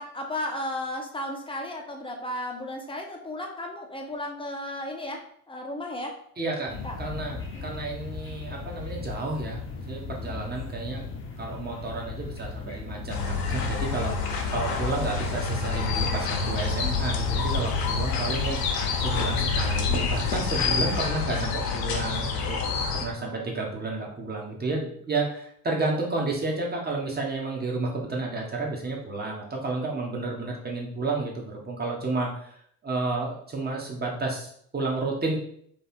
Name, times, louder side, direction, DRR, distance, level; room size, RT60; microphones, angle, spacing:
voice 1, 0.0-6.2 6.8-7.0 7.5-7.7 23.2-23.4, left 1 dB, 10° left, 1 dB, 1.0 m, -34 dB
voice 2, 6.4-11.1 11.4-14.1 14.5-22.6 22.9-32.5 32.8-35.4, right 3 dB, 20° right, -1 dB, 1.4 m, -31 dB
sound 1, 6.7-21.0, left 5 dB, 25° left, 1.1 m, -38 dB
sound 2, 13.1-23.0, left 4 dB, 50° left, 0.9 m, -27 dB
3.4 x 3.4 x 4.4 m, 0.65 s
figure-of-eight pair, 60°, 47 cm